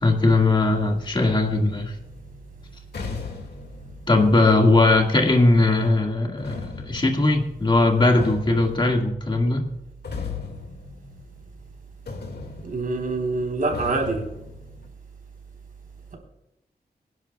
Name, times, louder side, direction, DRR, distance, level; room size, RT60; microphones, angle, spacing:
voice 1, 0.0-1.9 4.1-6.6 6.9-9.7, left 2 dB, 30° left, 2 dB, 1.9 m, -19 dB
sound 1, 2.0-5.4 6.4-11.8 12.1-14.9, left 4 dB, 80° left, 2.1 m, -38 dB
voice 2, 12.6-14.2, right 3 dB, 60° right, 1 dB, 3.9 m, -25 dB
24.5 x 11.0 x 2.3 m, 0.88 s
wide cardioid pair, 150°, 17 cm